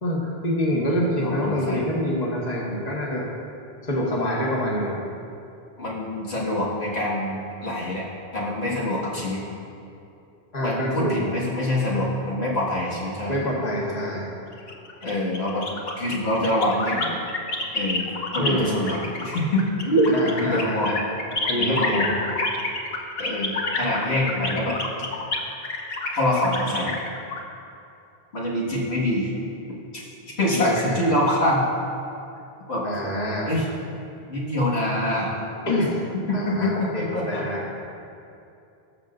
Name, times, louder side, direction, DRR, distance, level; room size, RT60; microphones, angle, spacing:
voice 1, 0.0-3.3 3.8-4.9 10.5-11.1 13.3-14.3 18.4-18.8 20.1-21.0 21.3-22.2 30.5-30.8 32.8-33.5 35.7-36.0 36.3-37.6, equal, 40° left, -4 dB, 1.5 m, -26 dB
voice 2, 1.2-1.8 5.8-8.0 8.3-9.4 10.6-13.3 15.0-15.6 16.0-17.2 17.7-21.1 21.6-22.1 23.2-24.8 26.1-26.9 28.3-29.3 29.9-31.7 32.7-32.8 33.4-33.7 34.3-35.3 36.1-36.9 37.1-37.4, left 1 dB, 90° left, -7 dB, 2.1 m, -25 dB
sound 1, 14.5-18.5 18.9-27.4, left 2 dB, 70° left, 1.2 m, -28 dB
19.0 x 6.5 x 2.6 m, 2.7 s
omnidirectional pair, 1.1 m